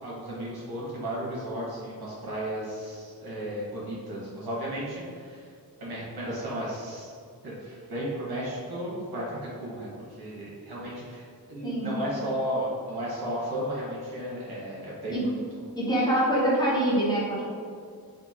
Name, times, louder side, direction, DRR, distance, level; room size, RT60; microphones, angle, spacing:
voice 1, 0.0-5.5 5.8-7.2 7.4-15.3, equal, 90° right, -7 dB, 1.3 m, -34 dB
voice 2, 15.8-17.5, right 1 dB, 10° left, -7 dB, 1.2 m, -25 dB
4.4 x 2.7 x 2.9 m, 2.2 s
wide cardioid pair, 90°, 37 cm